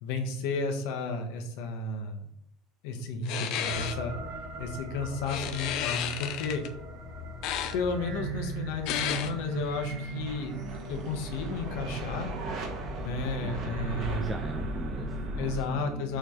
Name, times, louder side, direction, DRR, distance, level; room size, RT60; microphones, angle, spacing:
voice 1, 0.0-2.3 2.8-4.1 4.6-6.6 7.7-10.5 10.9-12.3 13.0-14.3 15.4-16.2, left 3 dB, 70° left, 4 dB, 1.4 m, -33 dB
sound 1, 3.3-3.9 5.3-6.7 7.4-7.7 8.9-9.3, left 10 dB, 50° left, 0.6 m, -32 dB
sound 2, 3.6-15.6, right 2 dB, 40° right, 1.6 m, -37 dB
voice 2, 13.4-13.8 14.2-16.2, right 3 dB, 10° right, 7 dB, 0.3 m, -41 dB
7.2 x 3.5 x 5.8 m, 0.74 s
cardioid pair, 180°, 0 cm